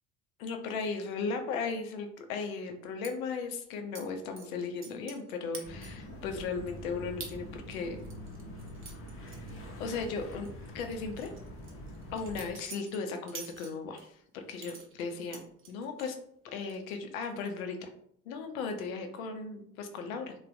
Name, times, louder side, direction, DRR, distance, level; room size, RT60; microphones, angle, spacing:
voice 1, 0.4-8.0 9.8-11.3 12.1-15.4 15.7-16.2 16.4-17.9 18.3-20.3, left 4 dB, 65° left, 5 dB, 0.6 m, -36 dB
sound 1, 3.0-3.1 3.9-4.1 4.4-5.3 5.5-6.1 6.5-6.6 7.2-7.3 7.7-10.1 10.3-10.5 10.9-14.1 14.6-16.1 16.5-16.9 17.2-17.6, right 5 dB, 30° right, 0.7 m, -47 dB
sound 2, 5.6-12.5, equal, 30° left, 0.7 m, -45 dB
3.3 x 2.2 x 2.5 m, 0.68 s
figure-of-eight pair, 55°, 44 cm